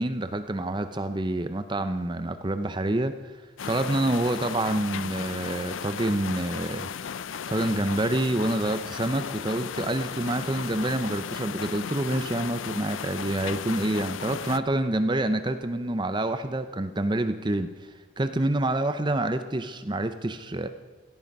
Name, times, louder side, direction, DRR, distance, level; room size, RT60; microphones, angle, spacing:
voice 1, 0.0-3.3 3.6-6.9 7.5-17.7 18.2-20.7, right 1 dB, 20° right, 9 dB, 0.6 m, -27 dB
Water mill - mill wheel from through the window, 3.6-14.6, left 7 dB, 75° left, 0.5 m, -35 dB
17.5 x 13.5 x 5.4 m, 1.4 s
head